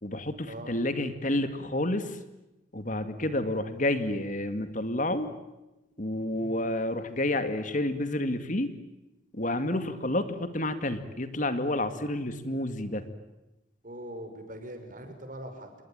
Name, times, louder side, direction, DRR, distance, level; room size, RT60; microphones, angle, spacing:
voice 1, 0.0-2.2 2.7-5.3 6.0-8.7 9.3-13.0, left 1 dB, 40° left, 10 dB, 2.2 m, -29 dB
voice 2, 6.3-6.7 13.8-15.7, right 1 dB, 45° right, 6 dB, 6.0 m, -42 dB
28.5 x 22.5 x 9.0 m, 0.99 s
head